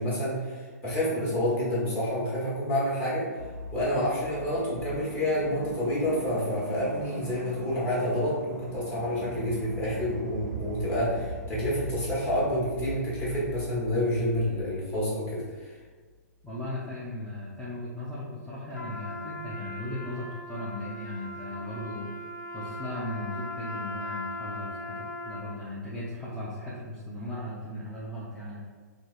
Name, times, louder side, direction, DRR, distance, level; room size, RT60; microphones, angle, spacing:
voice 1, 0.0-3.3 3.7-15.7, left 1 dB, 25° left, -8 dB, 1.0 m, -28 dB
sound 1, 3.4-15.8 16.1-16.2, right 1 dB, 85° right, 0.4 m, -40 dB
voice 2, 16.4-22.1 22.5-28.7, left 1 dB, 5° left, -9 dB, 0.4 m, -37 dB
Trumpet, 18.7-25.7, left 1 dB, 85° left, 0.4 m, -39 dB
2.7 x 2.0 x 2.4 m, 1.5 s
hypercardioid pair, 130°, 9 cm